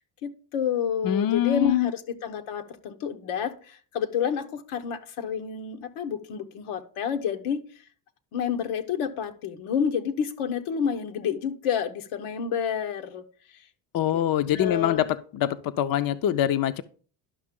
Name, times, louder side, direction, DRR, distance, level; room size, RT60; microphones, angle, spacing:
voice 1, 0.2-7.6 8.3-13.2 13.5-13.6 14.1-14.2 14.5-15.0, left 7 dB, 85° left, 7 dB, 1.1 m, -29 dB
voice 2, 1.0-1.9 13.9-15.1 15.3-16.8, left 11 dB, 45° left, 11 dB, 0.5 m, -24 dB
11.0 x 5.8 x 3.6 m, 0.42 s
cardioid pair, 95°, 49 cm